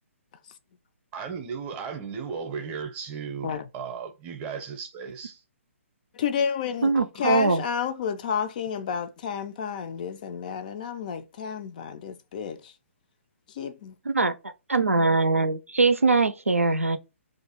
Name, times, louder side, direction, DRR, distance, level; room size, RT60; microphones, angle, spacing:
voice 1, 1.1-5.4, right 6 dB, 20° right, 0.6 m, -35 dB
voice 2, 6.1-12.7 13.5-14.0, left 7 dB, 35° left, 0.3 m, -31 dB
voice 3, 6.8-7.6 14.1-14.3 14.7-17.0, right 3 dB, 80° right, 0.5 m, -22 dB
2.5 x 2.3 x 4.1 m
figure-of-eight pair, 130°, 7 cm